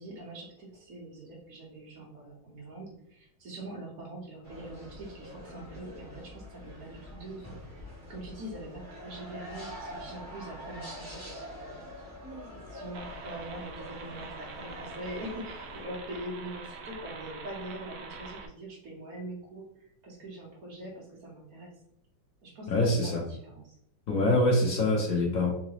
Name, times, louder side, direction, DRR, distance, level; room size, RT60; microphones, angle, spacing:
voice 1, 0.0-7.8 8.1-11.8 12.0-12.2 12.4-21.7 22.4-23.7 24.2-24.3, right 1 dB, 50° right, -3 dB, 1.5 m, -43 dB
sound 1, 4.4-15.8, left 1 dB, 10° right, 1.2 m, -45 dB
sound 2, 12.9-18.5, right 4 dB, 75° right, 0.9 m, -44 dB
voice 2, 22.7-23.2 24.1-25.5, left 1 dB, 60° left, -2 dB, 0.9 m, -25 dB
3.8 x 2.9 x 2.9 m, 0.72 s
omnidirectional pair, 2.2 m